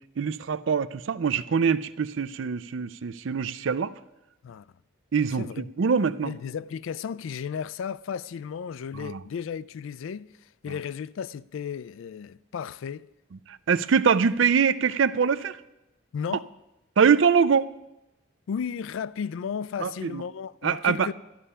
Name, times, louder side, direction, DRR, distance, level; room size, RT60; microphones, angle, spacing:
voice 1, 0.2-3.9 5.1-5.5 5.8-6.3 8.9-9.2 13.5-15.6 17.0-17.7 19.8-20.2 20.6-21.1, right 6 dB, 70° right, 0.4 m, -23 dB
voice 2, 5.4-5.7 6.2-13.1 16.1-16.5 18.5-21.1, left 7 dB, 75° left, 0.3 m, -34 dB
13.0 x 10.0 x 5.5 m
head